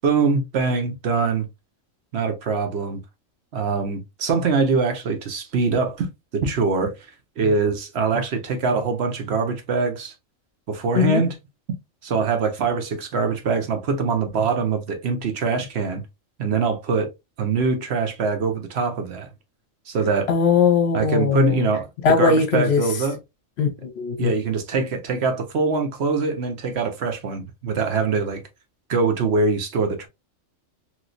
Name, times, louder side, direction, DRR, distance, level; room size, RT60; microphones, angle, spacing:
voice 1, 0.0-1.5 2.1-3.0 3.5-6.1 6.3-6.9 7.4-10.1 10.7-11.3 12.0-16.0 16.4-17.1 17.4-19.3 19.9-20.3 20.9-21.9 22.2-23.2 24.2-28.4 28.9-30.1, right 4 dB, 60° right, 0.8 m, -23 dB
voice 2, 20.3-21.7 22.0-22.8 23.6-24.3, left 5 dB, 60° left, 1.0 m, -19 dB
3.0 x 2.9 x 2.5 m
omnidirectional pair, 1.4 m